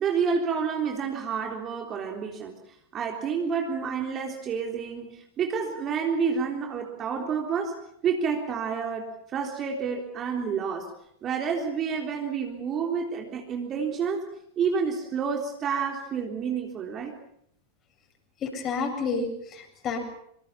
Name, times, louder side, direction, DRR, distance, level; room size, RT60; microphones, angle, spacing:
voice 1, 0.0-2.5 2.9-10.9 11.2-14.3 14.6-17.2, right 6 dB, 30° right, 2 dB, 3.7 m, -29 dB
voice 2, 18.4-20.0, left 4 dB, 30° left, 4 dB, 7.6 m, -30 dB
26.5 x 26.0 x 5.9 m, 0.71 s
figure-of-eight pair, 90°, 0 cm